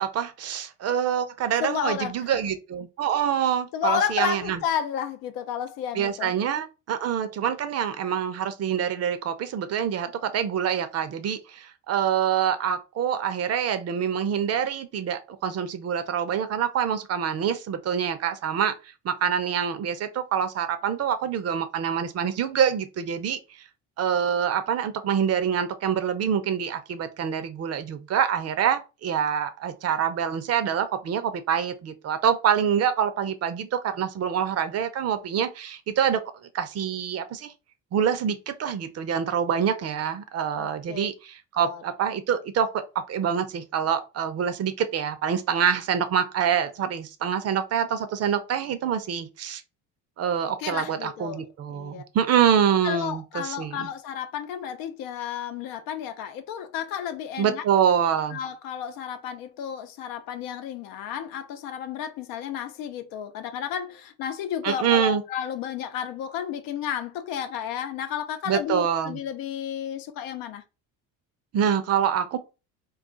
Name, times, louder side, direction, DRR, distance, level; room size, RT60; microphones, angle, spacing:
voice 1, 0.0-4.6 5.9-18.7 19.0-23.7 24.0-36.2 36.5-37.5 37.9-49.6 50.2-53.9 57.4-58.4 64.6-65.2 68.5-69.2 71.5-72.4, right 8 dB, 45° right, 0.6 m, -26 dB
voice 2, 1.6-2.3 3.7-6.3 40.6-41.1 41.6-41.8 50.6-52.0 52.8-57.6 58.3-70.6, left 9 dB, 75° left, 0.6 m, -32 dB
2.4 x 2.3 x 3.7 m
supercardioid pair, 100°, 35 cm